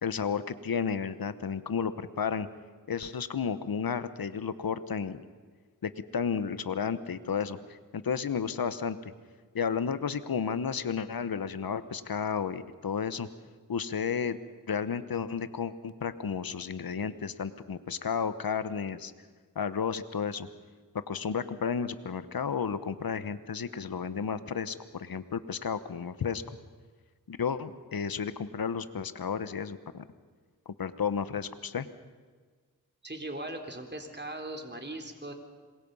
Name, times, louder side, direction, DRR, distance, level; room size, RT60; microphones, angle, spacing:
voice 1, 0.0-2.5 2.9-5.2 5.8-9.1 9.5-13.3 13.7-14.4 14.7-19.1 19.5-20.5 21.1-26.4 27.3-30.0 30.7-31.9, left 6 dB, 85° left, 13 dB, 1.1 m, -32 dB
voice 2, 33.0-35.3, right 1 dB, 30° right, 4 dB, 3.8 m, -39 dB
27.0 x 22.5 x 5.6 m, 1.5 s
cardioid pair, 45°, 35 cm